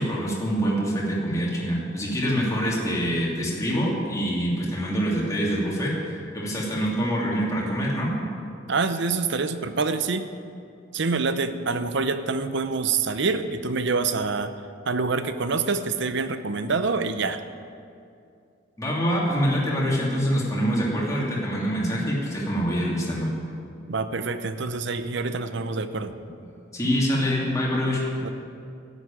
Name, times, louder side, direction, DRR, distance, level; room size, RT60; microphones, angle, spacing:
voice 1, 0.0-5.9 6.3-8.1 18.8-23.3 26.7-28.0, equal, 15° left, -5 dB, 2.8 m, -25 dB
voice 2, 8.7-10.2 10.9-14.5 14.9-17.4 23.9-26.1 28.2-28.3, right 4 dB, 60° right, 10 dB, 0.7 m, -26 dB
12.5 x 8.2 x 9.1 m, 2.5 s
head